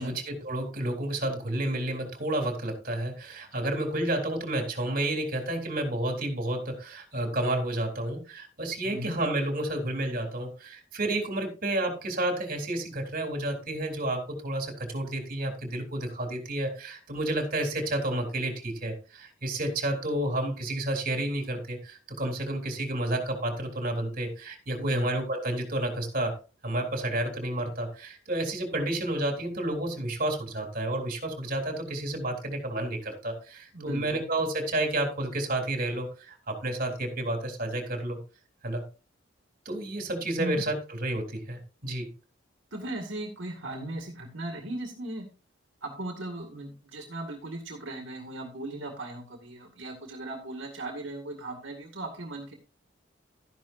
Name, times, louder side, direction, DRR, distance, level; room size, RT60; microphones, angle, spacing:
voice 1, 0.0-26.4 26.6-38.2 38.6-38.9 39.7-42.1, right 1 dB, 50° right, 3 dB, 3.5 m, -30 dB
voice 2, 8.8-9.2 24.8-25.1 33.7-34.2 40.4-40.7 42.7-45.3 45.8-52.5, right 1 dB, 75° right, 2 dB, 2.2 m, -37 dB
13.0 x 10.5 x 2.7 m, 0.33 s
head